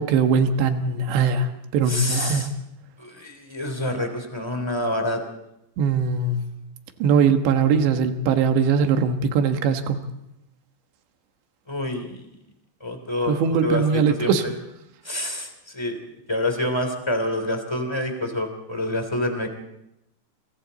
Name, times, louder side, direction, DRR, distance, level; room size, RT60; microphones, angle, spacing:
voice 1, 0.0-2.5 5.8-6.4 7.0-10.0 13.3-14.5, right 5 dB, 75° right, 6 dB, 3.6 m, -21 dB
voice 2, 1.9-2.5 3.0-5.2 11.7-12.2 12.8-14.5 15.0-16.0 16.3-19.5, left 1 dB, 10° left, 6 dB, 2.0 m, -27 dB
28.5 x 24.0 x 4.1 m, 0.84 s
omnidirectional pair, 5.2 m